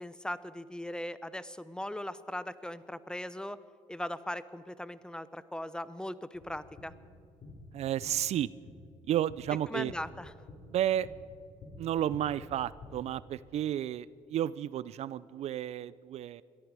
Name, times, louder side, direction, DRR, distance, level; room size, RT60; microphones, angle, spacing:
voice 1, 0.0-3.6 3.9-6.9 9.7-10.3, left 1 dB, 5° left, 15 dB, 0.7 m, -39 dB
sound 1, 6.3-12.9, left 2 dB, 65° left, 4.7 m, -51 dB
voice 2, 7.7-8.5 9.1-9.9 10.7-11.1 11.8-16.4, right 11 dB, 60° right, 19 dB, 0.4 m, -32 dB
22.0 x 13.5 x 4.8 m, 2.4 s
supercardioid pair, 70°, 12 cm